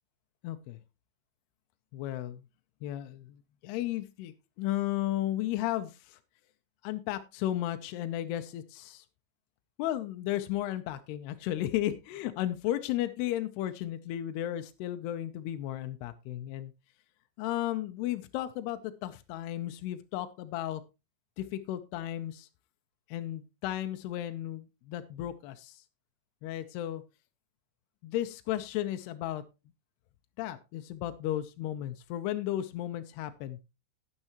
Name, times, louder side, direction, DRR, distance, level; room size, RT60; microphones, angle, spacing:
voice 1, 0.4-0.8 1.9-2.4 2.8-6.2 6.8-9.0 9.8-16.7 17.4-20.8 21.4-22.5 23.1-25.8 26.4-27.0 28.0-29.4 30.4-33.6, left 13 dB, 80° left, 8 dB, 2.4 m, -34 dB
12.0 x 9.9 x 3.0 m, 0.26 s
omnidirectional pair, 5.4 m